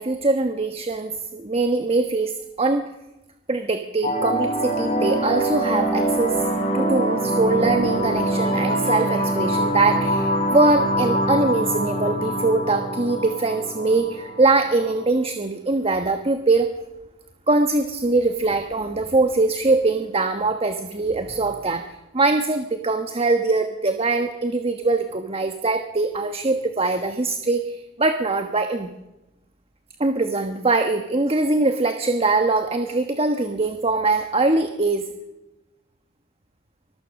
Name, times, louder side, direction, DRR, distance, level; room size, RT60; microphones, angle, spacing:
voice 1, 0.0-2.9 3.5-6.4 6.7-16.7 17.5-21.8 22.1-28.9 30.0-35.0, right 3 dB, 30° right, 7 dB, 1.3 m, -22 dB
sound 1, 4.0-15.0, right 1 dB, 40° left, 4.7 m, -24 dB
sound 2, 7.0-11.6 11.9-12.2, right 1 dB, 85° right, 7.1 m, -38 dB
24.5 x 21.5 x 6.5 m, 1.0 s
head